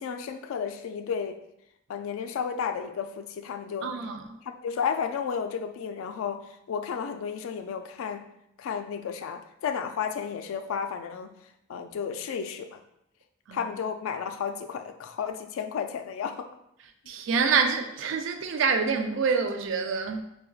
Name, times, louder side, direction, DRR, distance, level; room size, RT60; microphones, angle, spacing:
voice 1, 0.0-1.4 1.9-4.0 4.4-8.3 8.6-11.3 11.7-12.8 13.5-16.5, left 6 dB, 85° left, 0.3 m, -32 dB
voice 2, 3.8-4.3 13.5-13.7 17.1-20.2, right 5 dB, 70° right, 0.3 m, -26 dB
4.3 x 2.2 x 2.3 m
head